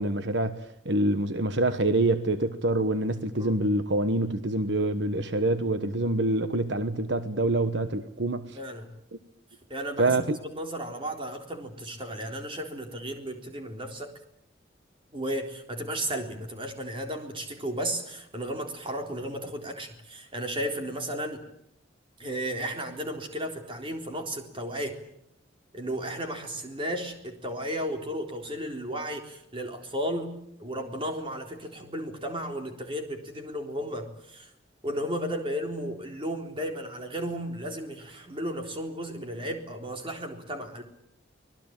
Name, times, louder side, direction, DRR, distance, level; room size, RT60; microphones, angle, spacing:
voice 1, 0.0-8.6 10.0-10.4, right 2 dB, 70° right, 1.3 m, -26 dB
voice 2, 8.6-8.9 9.7-14.1 15.1-21.4 22.2-25.0 25.7-34.5 34.8-40.8, equal, 30° right, 3.9 m, -34 dB
25.5 x 19.5 x 9.0 m
head